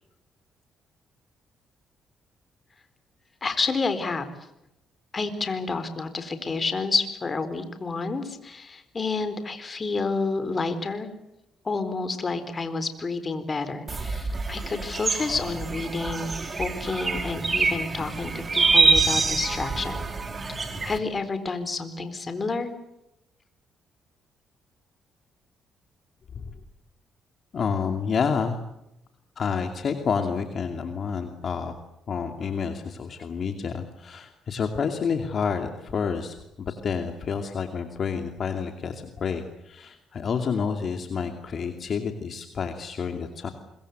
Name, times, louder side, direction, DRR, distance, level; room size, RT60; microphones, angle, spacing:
voice 1, 3.4-4.3 5.1-11.1 11.6-16.3 16.6-20.0 20.8-22.7, left 3 dB, 35° left, 10 dB, 4.0 m, -29 dB
sound 1, 13.9-21.0, right 4 dB, 30° right, 3.9 m, -25 dB
voice 2, 27.5-28.6 29.4-31.7 32.1-43.5, left 6 dB, 50° left, 5 dB, 2.6 m, -29 dB
25.5 x 23.0 x 8.1 m, 0.87 s
cardioid pair, 90°, 0 cm